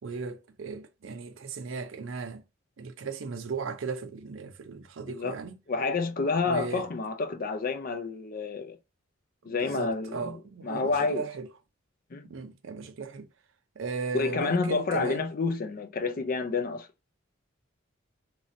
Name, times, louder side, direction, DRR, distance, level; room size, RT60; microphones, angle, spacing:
voice 1, 0.0-2.4 2.8-5.6 6.5-6.9 9.5-11.5 12.2-13.3 13.8-15.3, right 4 dB, 70° right, 0.5 m, -36 dB
voice 2, 5.1-5.4 5.7-8.8 9.4-11.2 12.1-12.3 14.1-16.9, left 4 dB, 45° left, 0.4 m, -29 dB
3.1 x 2.6 x 2.6 m
head